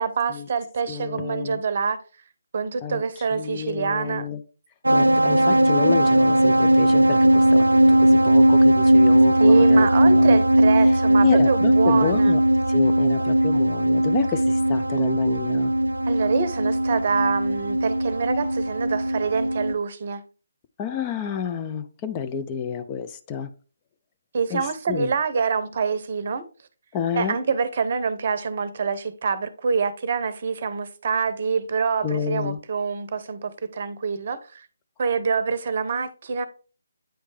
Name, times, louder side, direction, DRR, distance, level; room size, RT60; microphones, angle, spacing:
voice 1, 0.0-2.0 2.5-4.3 9.3-12.4 16.1-20.2 24.3-26.4 27.1-34.7 35.0-36.5, right 5 dB, 45° right, 0.7 m, -26 dB
voice 2, 0.9-1.6 2.8-3.0 3.3-4.4 4.9-7.7 8.0-10.4 11.2-12.4 12.7-15.7 20.8-23.5 24.5-24.6 24.9-25.1 26.9-27.4 32.0-32.6, left 7 dB, 25° left, 0.5 m, -29 dB
sound 1, 4.8-19.7, right 1 dB, 85° right, 0.3 m, -18 dB
8.9 x 3.2 x 3.2 m
figure-of-eight pair, 150°, 0 cm